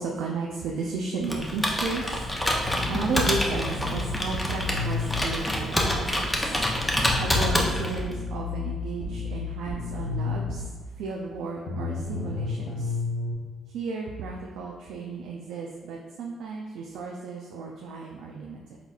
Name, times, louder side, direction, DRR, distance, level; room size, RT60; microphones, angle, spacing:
voice 1, 0.0-2.2 2.7-6.6 6.9-13.0 13.7-18.8, right 4 dB, 85° right, -1 dB, 0.4 m, -34 dB
Computer keyboard, 1.2-8.1, left 1 dB, 10° left, 0.7 m, -27 dB
sound 1, 2.7-5.3 7.0-10.6 11.7-13.3, left 4 dB, 80° left, 1.2 m, -32 dB
4.3 x 4.0 x 2.4 m, 1.4 s
cardioid pair, 90°, 0 cm